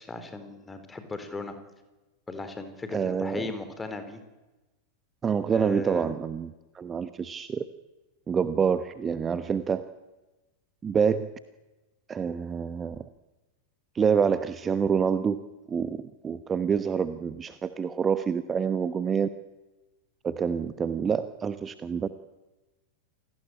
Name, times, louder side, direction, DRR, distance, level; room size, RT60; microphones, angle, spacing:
voice 1, 0.0-1.6 2.3-4.2 5.5-6.1, left 3 dB, 10° left, 9 dB, 4.1 m, -37 dB
voice 2, 2.9-3.5 5.2-7.7 8.3-9.8 10.8-11.3 12.1-13.0 13.9-15.4 15.7-19.3 20.2-22.1, right 6 dB, 20° right, 12 dB, 1.1 m, -27 dB
28.5 x 19.0 x 8.8 m, 1.1 s
figure-of-eight pair, 90°, 0 cm